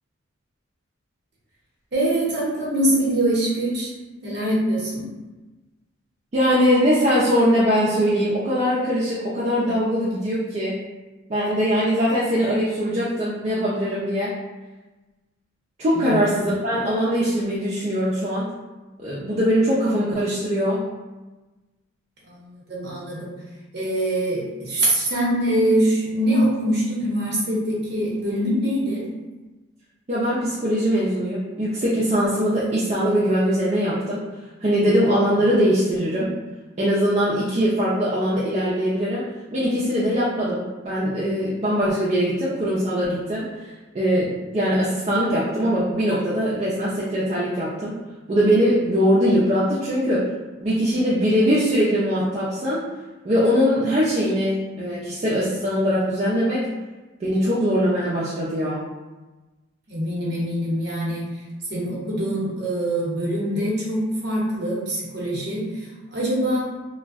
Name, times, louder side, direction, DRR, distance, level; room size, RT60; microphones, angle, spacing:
voice 1, 1.9-3.9 4.2-5.0 15.9-16.2 22.3-23.3 23.7-29.1 59.9-61.2 61.7-65.9 66.1-66.7, right 1 dB, 55° right, -5 dB, 0.7 m, -23 dB
voice 2, 6.3-10.8 11.3-14.3 15.8-18.5 19.0-20.8 30.1-34.2 34.6-36.3 36.8-39.2 39.5-43.7 43.9-48.0 48.3-50.3 50.6-52.8 53.2-56.6 57.2-58.8, equal, 35° right, -9 dB, 0.3 m, -21 dB
2.5 x 2.1 x 2.3 m, 1.2 s
head